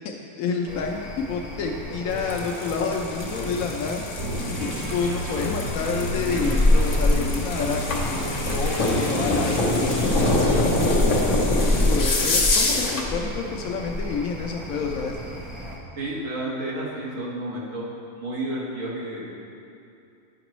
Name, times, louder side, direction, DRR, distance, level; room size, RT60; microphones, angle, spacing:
voice 1, 0.0-4.0 4.6-10.9 11.7-15.2, left 5 dB, 80° left, 1 dB, 1.0 m, -29 dB
sound 1, 0.7-15.8, left 1 dB, ahead, 0.7 m, -28 dB
sound 2, 2.1-13.1, left 2 dB, 65° left, 1.3 m, -26 dB
sound 3, 4.2-11.0, right 1 dB, 85° right, 1.9 m, -33 dB
voice 2, 16.0-17.9 18.2-19.3, right 1 dB, 70° right, -5 dB, 1.5 m, -31 dB
10.0 x 5.9 x 3.0 m, 2.6 s
omnidirectional pair, 1.4 m